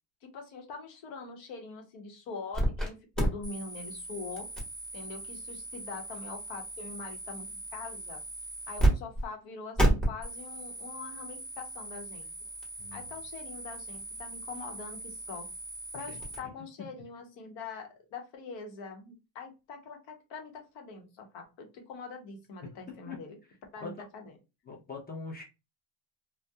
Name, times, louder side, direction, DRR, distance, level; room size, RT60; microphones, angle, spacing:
voice 1, 0.2-4.5 4.9-8.2 8.7-12.3 12.9-15.5 15.9-23.4 23.7-24.3, left 4 dB, 75° left, 3 dB, 0.9 m, -43 dB
sound 1, 2.5-2.9 3.1-8.9 9.1-9.3 9.8-16.4, right 1 dB, ahead, 0.9 m, -33 dB
voice 2, 12.8-13.1 16.1-16.5 16.8-16.9 22.6-23.2 23.8-24.0 24.6-25.4, left 4 dB, 20° left, 1 dB, 0.5 m, -43 dB
2.2 x 2.1 x 2.7 m, 0.27 s
cardioid pair, 125°, 46 cm